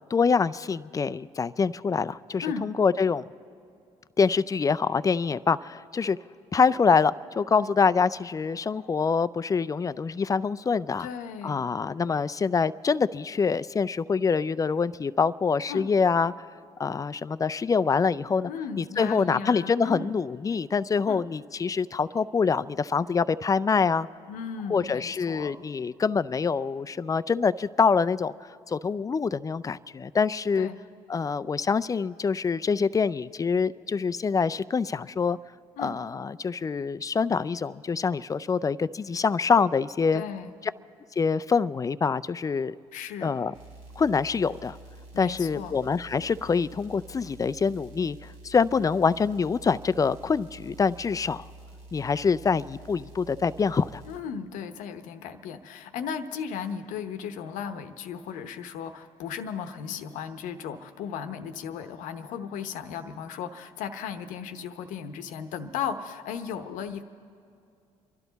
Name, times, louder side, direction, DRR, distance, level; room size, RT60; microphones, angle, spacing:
voice 1, 0.1-3.2 4.2-6.2 6.5-11.1 11.4-16.3 16.8-18.5 18.8-24.1 24.7-28.3 28.7-30.7 31.1-35.4 35.8-40.2 41.2-42.7 43.2-43.5 44.0-44.8 45.2-51.5 51.9-54.0, left 5 dB, 25° left, 15 dB, 0.4 m, -25 dB
voice 2, 11.0-11.6 15.7-15.9 18.4-20.1 21.1-21.2 24.3-25.5 30.5-30.8 35.8-36.0 40.1-40.5 42.9-43.4 45.1-45.8 54.1-67.0, left 7 dB, 80° left, 9 dB, 0.9 m, -36 dB
sound 1, 43.5-54.2, right 2 dB, 70° right, 2.5 m, -48 dB
28.0 x 12.0 x 4.0 m, 2.5 s
supercardioid pair, 65°, 13 cm